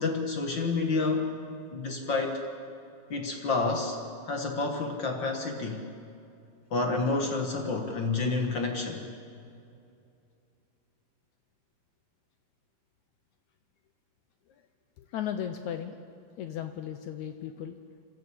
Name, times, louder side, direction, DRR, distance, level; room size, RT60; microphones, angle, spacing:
voice 1, 0.0-1.3 1.7-2.4 3.1-4.0 4.3-5.8 6.7-9.1, left 3 dB, 55° left, 3 dB, 1.3 m, -29 dB
voice 2, 15.0-16.0 16.4-17.8, left 9 dB, 80° left, 8 dB, 1.7 m, -36 dB
27.5 x 12.5 x 8.4 m, 2.5 s
omnidirectional pair, 4.2 m